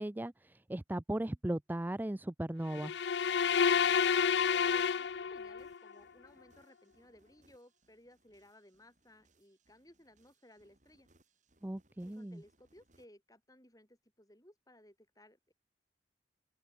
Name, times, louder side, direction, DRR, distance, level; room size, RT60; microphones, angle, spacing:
voice 1, 0.0-2.9 11.6-12.4, right 1 dB, 10° right, 0.4 m, -37 dB
sound 1, 2.7-5.8, left 6 dB, 60° left, 0.4 m, -29 dB
sound 2, 4.4-13.1, right 2 dB, 40° right, 6.8 m, -72 dB
voice 2, 4.5-11.1 12.0-15.5, left 1 dB, 20° left, 8.0 m, -61 dB
open air
head